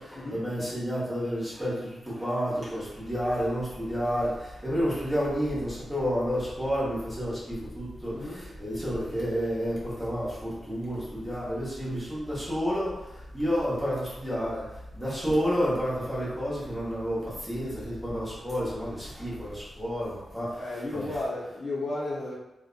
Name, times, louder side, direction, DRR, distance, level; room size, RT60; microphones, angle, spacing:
voice 1, 0.0-1.9 2.2-4.3 4.6-8.1 8.6-12.9 13.3-14.6 14.9-20.5 20.9-21.2, equal, 5° right, -9 dB, 1.0 m, -30 dB
sound 1, 2.5-20.7, equal, 50° right, 0.5 m, -47 dB
voice 2, 8.1-8.4 20.6-22.4, left 2 dB, 45° left, -7 dB, 0.7 m, -33 dB
2.5 x 2.1 x 2.4 m, 0.95 s
wide cardioid pair, 130°, 0 cm